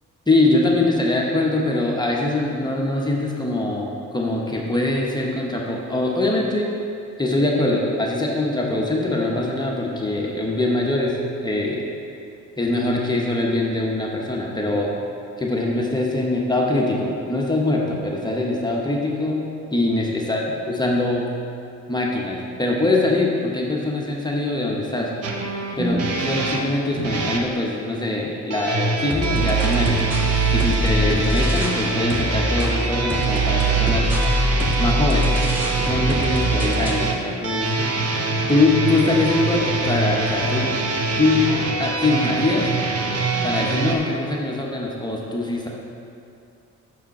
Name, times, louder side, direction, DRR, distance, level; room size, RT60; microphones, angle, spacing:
voice 1, 0.3-6.7 7.2-11.8 12.6-14.9 15.4-19.4 19.7-21.3 21.9-25.1 25.8-30.0 30.5-34.1 34.8-35.4 35.7-40.8 41.2-41.5 41.8-42.7 43.4-45.7, left 2 dB, 15° left, -2 dB, 1.0 m, -23 dB
sound 1, 25.2-27.5 28.5-43.9, right 3 dB, 55° right, 0.9 m, -24 dB
sound 2, 29.1-31.8 32.1-37.1, right 2 dB, 5° right, 1.2 m, -23 dB
6.3 x 6.0 x 4.2 m, 2.6 s
cardioid pair, 90°, 30 cm